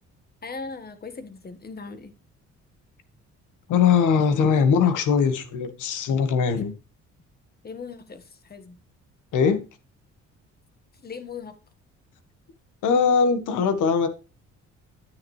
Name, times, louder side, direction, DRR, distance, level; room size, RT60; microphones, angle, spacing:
voice 1, 0.4-2.1 7.6-8.8 11.0-11.5, left 4 dB, 30° left, 1.6 m, -38 dB
voice 2, 3.7-6.7 9.3-9.6 12.8-14.1, left 6 dB, 85° left, 1.7 m, -21 dB
9.7 x 9.2 x 3.3 m
cardioid pair, 110°, 30 cm